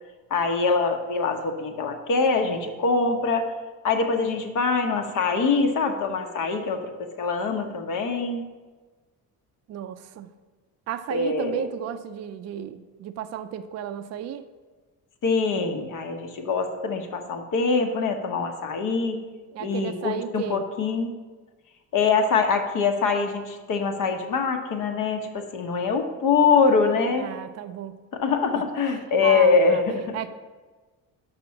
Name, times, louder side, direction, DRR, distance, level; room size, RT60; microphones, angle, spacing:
voice 1, 0.3-3.5 3.8-8.4 11.1-11.7 15.2-19.2 19.6-21.1 21.9-27.3 28.1-30.2, left 4 dB, 65° left, 5 dB, 1.1 m, -24 dB
voice 2, 9.7-10.3 10.9-14.5 19.5-20.6 27.1-28.0 28.5-28.6 29.2-29.8 30.1-30.3, right 10 dB, 50° right, 9 dB, 0.4 m, -33 dB
6.1 x 5.9 x 6.3 m, 1.3 s
cardioid pair, 115°, 35 cm